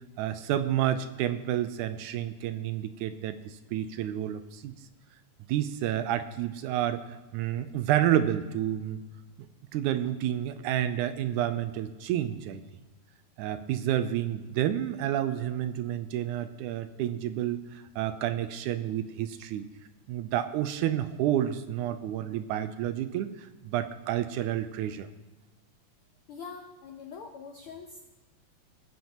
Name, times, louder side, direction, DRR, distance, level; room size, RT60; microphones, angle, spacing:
voice 1, 0.2-4.7 5.5-9.0 9.7-12.6 13.4-19.7 20.1-25.1, right 11 dB, 85° right, 10 dB, 2.0 m, -30 dB
voice 2, 26.3-28.0, left 5 dB, 80° left, 3 dB, 1.2 m, -43 dB
19.5 x 9.3 x 3.0 m, 1.2 s
omnidirectional pair, 3.6 m